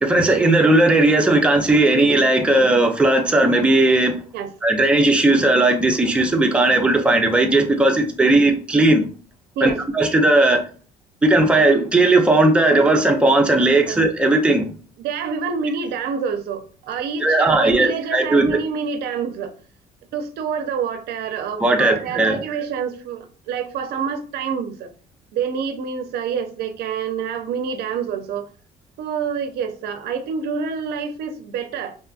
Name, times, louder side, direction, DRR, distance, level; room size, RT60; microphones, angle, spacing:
voice 1, 0.0-4.2 4.6-9.0 9.6-10.6 11.2-14.6 17.2-18.6 21.6-22.4, right 2 dB, 5° right, 0.4 m, -16 dB
voice 2, 15.0-19.5 20.1-24.9 25.3-28.5 29.0-32.0, right 6 dB, 75° right, 0.4 m, -27 dB
2.9 x 2.3 x 2.4 m
cardioid pair, 110°, 17 cm